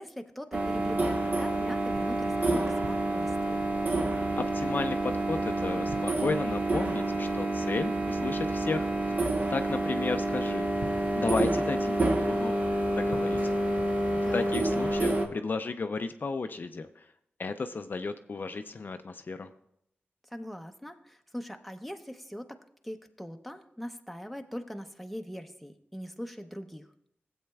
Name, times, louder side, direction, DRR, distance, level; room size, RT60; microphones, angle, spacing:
voice 1, 0.0-3.7 14.2-14.6 20.3-22.6 22.8-26.8, equal, ahead, 6 dB, 0.7 m, -41 dB
sound 1, 0.5-15.3, right 2 dB, 45° right, 1.0 m, -28 dB
voice 2, 4.4-10.9 11.2-12.6 13.0-13.4 14.3-17.0 17.4-19.5, left 4 dB, 50° left, 8 dB, 0.4 m, -34 dB
17.0 x 7.9 x 2.3 m, 0.76 s
wide cardioid pair, 90°, 4 cm